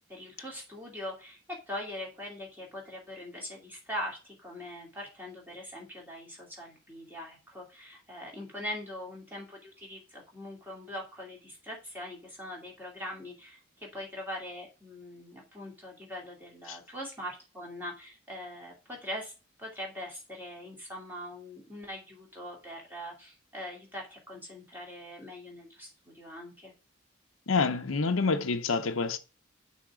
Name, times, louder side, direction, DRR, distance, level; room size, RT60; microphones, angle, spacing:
voice 1, 0.1-1.4 1.7-19.3 19.6-26.7, left 1 dB, 10° right, 2.5 m, -42 dB
voice 2, 27.5-29.2, left 4 dB, 90° left, 0.7 m, -27 dB
6.2 x 3.6 x 6.1 m
head